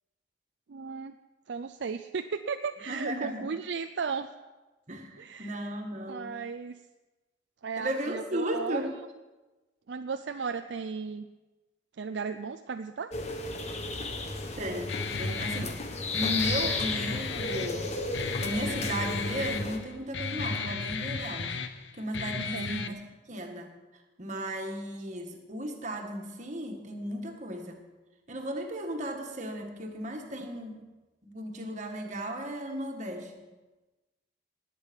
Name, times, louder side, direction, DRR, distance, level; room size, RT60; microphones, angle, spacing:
voice 1, 0.7-1.2 1.5-4.3 5.2-5.5 6.1-6.8 7.6-8.8 9.9-11.3 12.0-13.1 22.5-23.0, right 5 dB, 65° right, 8 dB, 0.4 m, -35 dB
voice 2, 2.9-3.5 4.9-6.4 7.8-8.9 14.6-15.8 16.1-18.0 18.4-21.6 22.0-22.9 23.3-23.7 24.2-27.8 28.3-30.8 31.2-33.5, equal, 40° right, 3 dB, 1.7 m, -35 dB
sound 1, 13.1-19.8, left 2 dB, 35° left, 1.3 m, -34 dB
Guitar, 14.9-22.9, left 4 dB, 65° left, 0.8 m, -34 dB
19.5 x 8.4 x 5.3 m, 1.2 s
head